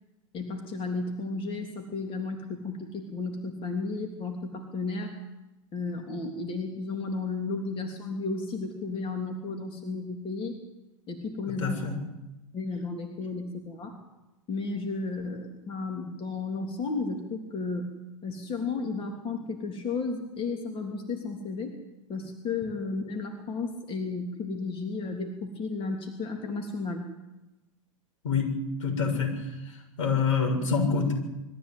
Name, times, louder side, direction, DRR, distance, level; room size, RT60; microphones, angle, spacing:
voice 1, 0.3-5.2 5.7-10.6 11.1-11.8 12.5-14.0 14.5-17.9 18.2-21.7 22.1-27.1, left 3 dB, 30° left, 3 dB, 3.3 m, -33 dB
voice 2, 11.6-12.0 28.2-28.5 28.8-29.4 29.7-31.1, left 5 dB, 70° left, 4 dB, 6.8 m, -26 dB
22.0 x 15.0 x 9.3 m, 1.0 s
hypercardioid pair, 105°, 17 cm